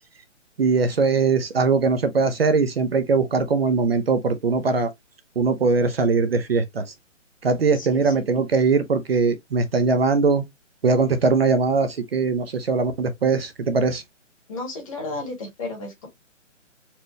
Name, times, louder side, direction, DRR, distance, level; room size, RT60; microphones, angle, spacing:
voice 1, 0.6-4.9 5.4-6.9 7.4-10.4 10.8-14.0, right 4 dB, 50° right, 0.7 m, -21 dB
voice 2, 7.7-8.2 14.5-16.1, left 2 dB, 25° left, 1.6 m, -33 dB
4.3 x 2.5 x 3.0 m
hypercardioid pair, 170°, 38 cm